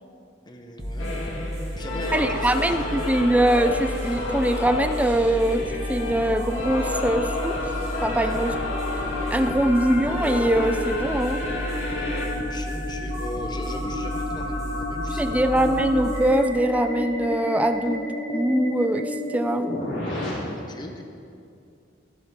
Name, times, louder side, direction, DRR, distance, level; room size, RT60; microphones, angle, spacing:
voice 1, 0.4-2.6 2.9-3.1 8.2-8.4 12.0-15.8 20.1-21.0, left 1 dB, 20° left, 4 dB, 1.0 m, -39 dB
sound 1, 0.8-17.8, equal, 40° right, 1.9 m, -33 dB
sound 2, 1.0-12.3, left 2 dB, 85° left, 2.1 m, -32 dB
voice 2, 2.1-7.6 8.0-8.5 9.3-11.4 15.1-19.7, right 1 dB, 10° right, 9 dB, 0.4 m, -23 dB
sound 3, 5.2-20.3, left 2 dB, 65° left, 3.5 m, -32 dB
14.0 x 12.5 x 3.8 m, 2.4 s
head